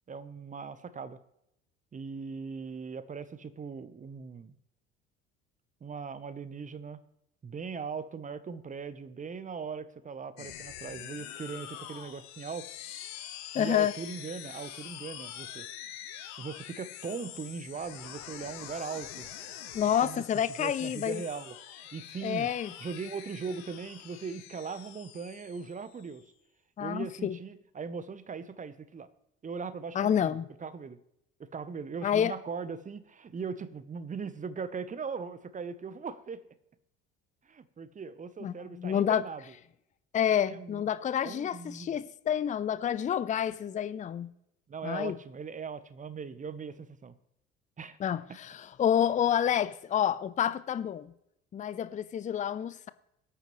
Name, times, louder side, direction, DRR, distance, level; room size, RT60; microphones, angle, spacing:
voice 1, 0.1-1.2 1.9-4.6 5.8-7.0 7.4-12.7 13.5-15.7 16.4-19.3 20.0-20.2 20.6-22.5 22.8-26.2 26.8-29.1 29.4-30.3 30.6-31.0 31.4-36.5 37.4-39.4 40.5-40.8 41.2-42.0 44.7-47.1 47.8-48.0, right 5 dB, 25° right, 0.9 m, -39 dB
sound 1, 10.4-26.2, left 11 dB, 60° left, 1.4 m, -45 dB
voice 2, 13.5-13.9 19.7-21.2 22.2-22.7 26.8-27.4 29.9-30.5 32.0-32.3 38.4-39.2 40.1-44.3 44.8-45.2 48.0-51.1 51.5-52.9, left 9 dB, 25° left, 0.5 m, -29 dB
22.5 x 9.1 x 3.2 m
figure-of-eight pair, 55°, 32 cm